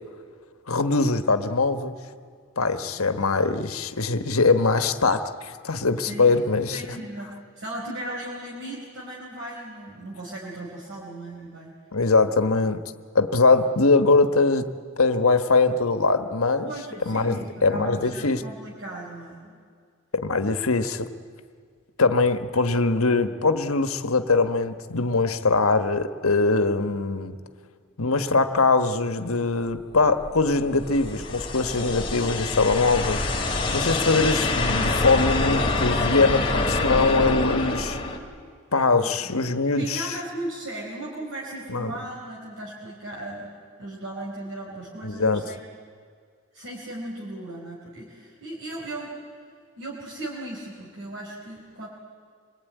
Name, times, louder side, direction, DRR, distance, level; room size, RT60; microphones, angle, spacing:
voice 1, 0.7-2.0 2.6-6.8 11.9-12.8 13.1-14.7 15.0-16.7 17.0-18.4 20.1-21.1 22.0-27.4 28.0-33.2 33.7-38.0 38.7-40.1 41.7-41.9 45.0-45.4, left 3 dB, 85° left, 9 dB, 1.4 m, -22 dB
voice 2, 6.7-7.3 7.6-11.7 16.6-19.6 35.9-36.3 39.0-39.4 39.8-43.5 43.8-45.6 46.5-49.2 49.8-51.9, right 1 dB, 60° right, -3 dB, 4.5 m, -37 dB
sound 1, 29.9-38.2, left 2 dB, 25° left, 2.6 m, -26 dB
26.0 x 21.5 x 9.3 m, 2.1 s
head